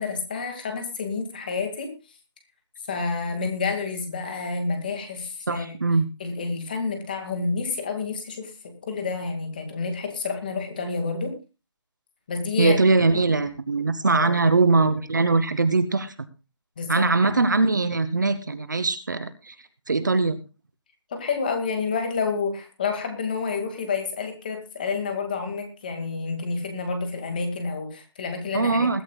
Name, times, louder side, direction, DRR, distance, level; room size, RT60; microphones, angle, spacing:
voice 1, 0.0-1.9 2.9-5.7 6.2-8.5 8.8-11.3 12.3-12.8 13.1-13.3 14.0-14.4 16.8-17.3 21.1-29.0, left 4 dB, 20° left, 5 dB, 2.1 m, -29 dB
voice 2, 5.5-6.1 12.6-16.1 16.9-19.5 19.9-20.4 28.5-29.0, right 3 dB, 40° right, 13 dB, 1.0 m, -21 dB
20.5 x 13.0 x 2.3 m, 0.31 s
figure-of-eight pair, 175°, 15 cm